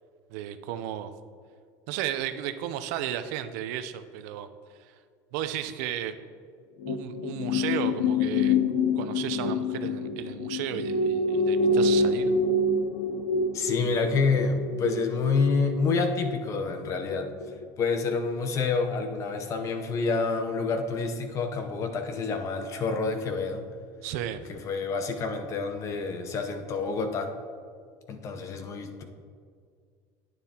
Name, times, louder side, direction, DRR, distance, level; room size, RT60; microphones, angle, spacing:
voice 1, 0.3-1.1 1.9-4.5 4.8-4.9 5.3-6.1 6.9-8.6 9.0-12.3 24.0-24.4, right 11 dB, 80° right, 11 dB, 0.5 m, -34 dB
sound 1, 6.8-17.1 17.4-17.6, left 2 dB, 85° left, 0.7 m, -27 dB
voice 2, 13.5-17.3 17.8-23.7 24.5-27.3 28.1-29.0, left 4 dB, 35° left, 6 dB, 0.8 m, -28 dB
10.5 x 9.3 x 2.9 m, 2.1 s
cardioid pair, 150°, 9 cm